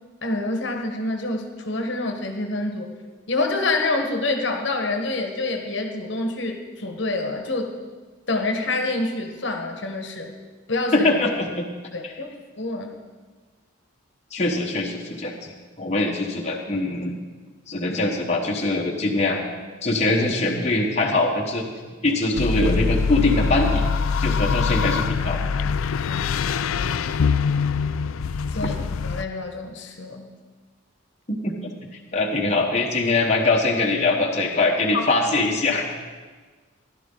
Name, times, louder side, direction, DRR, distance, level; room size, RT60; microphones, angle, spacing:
voice 1, 0.2-2.9 3.3-7.8 8.3-10.3 10.7-11.1 11.9-12.9 26.1-26.4 26.7-27.1 28.5-28.8 29.1-30.3 34.9-35.1, left 2 dB, 60° left, 4 dB, 1.2 m, -27 dB
voice 2, 10.9-11.7 12.0-12.1 14.3-17.1 17.7-19.4 19.8-21.6 22.0-23.8 24.2-25.4 28.6-28.7 31.3-31.6 32.1-35.9, left 2 dB, 35° left, -1 dB, 1.1 m, -22 dB
sound 1, 22.3-29.2, left 5 dB, 90° left, 0.4 m, -23 dB
15.5 x 12.0 x 3.8 m, 1.4 s
head